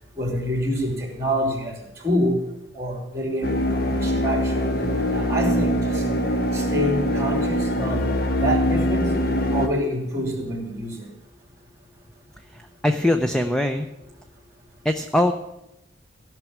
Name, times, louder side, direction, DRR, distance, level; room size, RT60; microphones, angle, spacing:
voice 1, 0.2-1.7 2.0-2.4 2.8-3.5 3.8-4.4 5.1-6.0 6.5-8.0 8.4-9.1 9.5-11.0, equal, 15° right, 1 dB, 2.8 m, -26 dB
sound 1, 3.4-9.7, equal, 55° left, 1.2 m, -23 dB
voice 2, 12.5-13.9 14.8-15.3, left 1 dB, 5° left, 7 dB, 0.5 m, -22 dB
15.0 x 6.0 x 8.5 m, 0.89 s
head